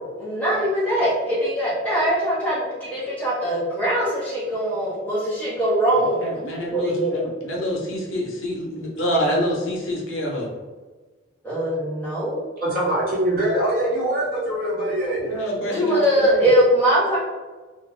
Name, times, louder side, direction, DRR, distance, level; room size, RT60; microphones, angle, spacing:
voice 1, 0.1-6.3 6.7-7.2 11.4-12.5 15.6-17.2, equal, 10° left, -9 dB, 1.0 m, -22 dB
voice 2, 6.0-10.5 15.2-16.5, equal, 80° left, -2 dB, 0.8 m, -26 dB
voice 3, 12.6-15.3, right 1 dB, 45° right, -9 dB, 1.3 m, -23 dB
2.5 x 2.4 x 3.2 m, 1.3 s
head